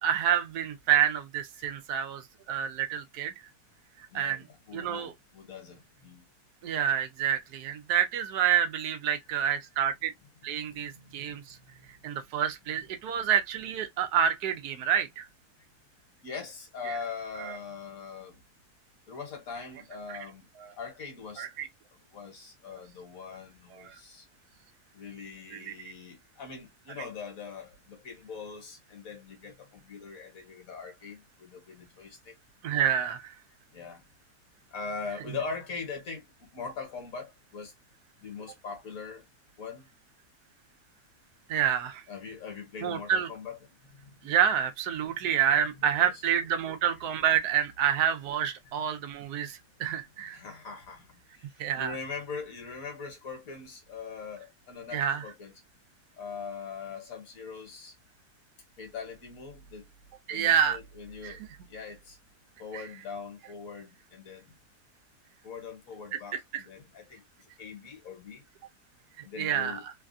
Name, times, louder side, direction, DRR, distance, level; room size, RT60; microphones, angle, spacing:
voice 1, 0.0-3.3 4.0-4.4 4.7-5.1 6.6-10.1 10.4-11.6 12.0-15.3 16.9-17.0 17.4-17.6 20.1-20.2 20.6-20.7 21.4-21.7 23.7-23.9 25.5-25.7 32.6-33.3 41.5-42.0 42.8-43.3 44.2-50.4 51.6-51.9 54.9-55.2 60.3-60.8 61.2-61.4 62.7-62.8 66.3-66.6 69.4-69.9, right 9 dB, 85° right, 1.2 m, -28 dB
voice 2, 4.1-6.2 10.7-11.4 11.6-11.9 16.2-18.4 19.1-20.5 20.8-21.5 21.9-24.3 24.9-32.3 33.7-34.0 34.7-37.7 38.2-39.2 39.6-39.9 42.1-43.6 44.0-44.2 45.0-45.1 46.0-46.1 50.3-51.5 51.8-55.5 56.2-57.9 58.8-59.9 60.3-61.4 61.7-62.2 62.6-64.5 65.4-68.4 69.2-69.8, left 5 dB, 60° left, 1.5 m, -42 dB
3.2 x 2.3 x 2.4 m
omnidirectional pair, 1.7 m